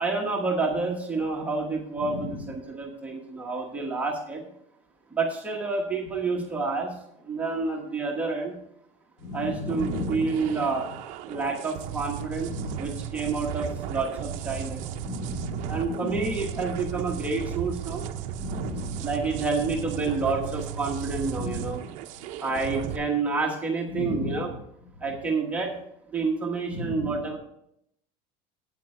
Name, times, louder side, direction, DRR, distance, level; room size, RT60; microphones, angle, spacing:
voice 1, 0.0-4.4 5.1-6.9 7.3-8.5 9.3-10.8 11.3-12.5 12.8-14.8 15.7-18.0 19.0-21.8 22.4-24.5 25.0-25.7 26.1-27.4, right 4 dB, 10° right, -1 dB, 1.1 m, -29 dB
voice 2, 2.0-2.5 9.2-10.7 12.5-13.1 15.0-16.5 18.4-19.1 21.3-21.8 23.9-24.6 25.1-25.2 26.7-27.3, left 3 dB, 90° left, 1 dB, 4.8 m, -35 dB
sound 1, 9.7-23.0, right 9 dB, 45° right, 0.7 m, -35 dB
8.8 x 8.6 x 4.9 m, 0.74 s
cardioid pair, 175°, 16 cm